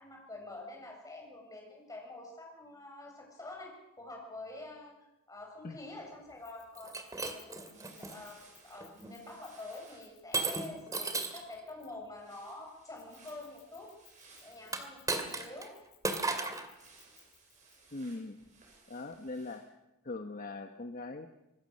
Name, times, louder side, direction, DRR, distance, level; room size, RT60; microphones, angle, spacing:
voice 1, 0.0-5.0 5.3-13.9 14.4-16.5, left 2 dB, 15° left, 0 dB, 7.2 m, -47 dB
Keys jangling, 6.4-12.1 13.0-17.7, left 13 dB, 80° left, 6.6 m, -62 dB
Shatter, 6.8-8.2 8.8-9.1 10.3-11.5 14.6-15.7 16.0-16.7, right 3 dB, 15° right, 2.3 m, -35 dB
sound 1, 7.7-10.1 12.1-14.9 16.7-19.7, right 4 dB, 35° right, 7.8 m, -60 dB
voice 2, 17.9-18.4 18.9-19.7 20.0-21.3, left 2 dB, 45° left, 6 dB, 1.2 m, -41 dB
25.5 x 20.5 x 6.5 m, 0.93 s
head